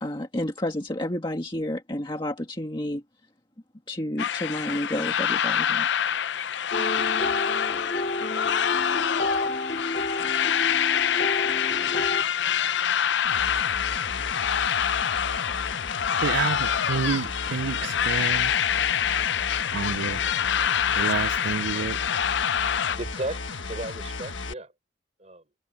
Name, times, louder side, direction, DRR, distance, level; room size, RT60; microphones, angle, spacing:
voice 1, 0.0-3.0 3.9-5.9, left 1 dB, 25° left, 1.8 m, -30 dB
sound 1, 4.2-23.0, left 8 dB, 70° left, 0.5 m, -26 dB
sound 2, 6.7-12.2, left 1 dB, 45° left, 2.7 m, -31 dB
sound 3, 13.2-24.5, left 4 dB, 90° left, 1.4 m, -35 dB
voice 2, 16.2-18.5 19.7-20.2 20.9-22.0, right 6 dB, 80° right, 0.4 m, -29 dB
voice 3, 22.9-24.7 25.2-25.4, right 1 dB, 35° right, 4.6 m, -35 dB
head